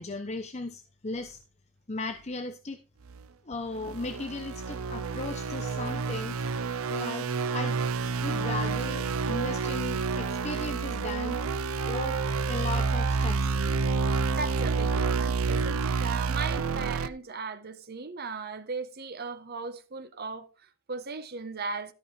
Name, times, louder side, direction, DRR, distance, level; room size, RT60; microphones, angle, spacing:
voice 1, 0.0-1.4 1.9-2.8 3.5-6.4 6.9-7.8 8.2-11.4 11.8-12.2 12.5-13.5, left 2 dB, 30° left, 0.8 m, -36 dB
sound 1, 3.1-3.2 3.7-17.1, right 4 dB, 80° right, 0.6 m, -29 dB
voice 2, 14.3-21.9, right 4 dB, 45° right, 1.2 m, -37 dB
13.5 x 5.4 x 5.3 m
head